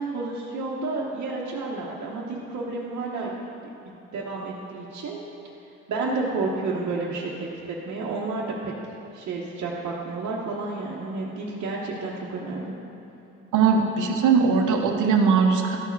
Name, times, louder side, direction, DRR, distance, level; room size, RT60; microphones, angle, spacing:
voice 1, 0.0-3.3 3.8-5.2 5.9-8.7 9.1-12.7, right 3 dB, 60° right, -6 dB, 1.1 m, -31 dB
voice 2, 13.5-15.8, right 5 dB, 85° right, 3 dB, 0.9 m, -20 dB
12.5 x 4.7 x 4.6 m, 2.8 s
cardioid pair, 90°, 30 cm